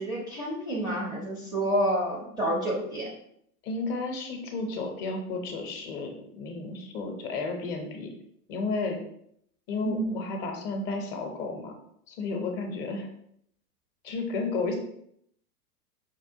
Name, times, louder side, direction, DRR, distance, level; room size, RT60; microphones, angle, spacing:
voice 1, 0.0-3.1 9.8-10.2, right 1 dB, 10° right, -4 dB, 0.4 m, -29 dB
voice 2, 3.6-8.1 8.5-9.0 9.7-11.7 12.1-13.1 14.0-14.8, left 3 dB, 35° left, 3 dB, 0.7 m, -32 dB
5.1 x 2.2 x 2.7 m, 0.71 s
hypercardioid pair, 110°, 47 cm